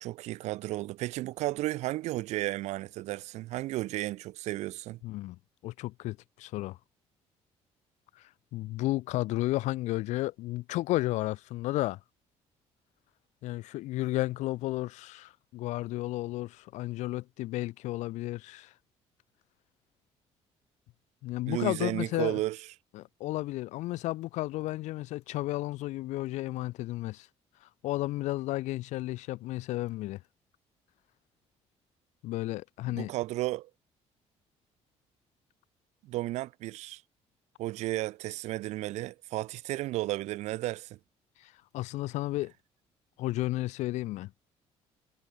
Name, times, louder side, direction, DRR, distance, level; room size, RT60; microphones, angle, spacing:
voice 1, 0.0-5.0 21.5-22.6 32.8-33.7 36.0-37.0 37.6-41.0, right 17 dB, 75° right, 1.4 m, -33 dB
voice 2, 5.0-6.8 8.2-12.0 13.4-18.7 21.2-22.4 22.9-27.3 27.6-30.2 32.2-33.1 41.4-42.5 43.2-44.3, left 17 dB, 85° left, 2.4 m, -33 dB
cardioid pair, 180°, 12 cm